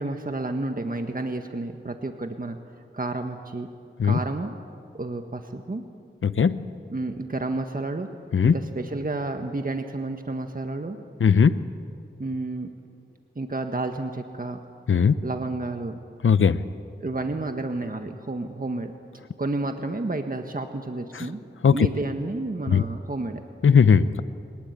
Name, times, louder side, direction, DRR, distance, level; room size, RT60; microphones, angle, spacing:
voice 1, 0.0-2.6 2.9-3.7 4.0-4.5 4.9-5.8 6.9-8.1 8.4-11.0 12.2-12.7 13.3-14.6 15.2-16.0 17.0-18.9 19.4-21.4 21.7-23.4, right 2 dB, 45° right, 5 dB, 1.6 m, -30 dB
voice 2, 6.2-6.7 8.3-8.5 11.2-11.6 14.9-15.2 16.2-16.6 21.1-21.3 21.6-21.9 22.7-22.8 23.6-24.2, left 6 dB, 85° left, 13 dB, 0.7 m, -18 dB
23.5 x 20.0 x 9.8 m, 2.3 s
cardioid pair, 40°, 20 cm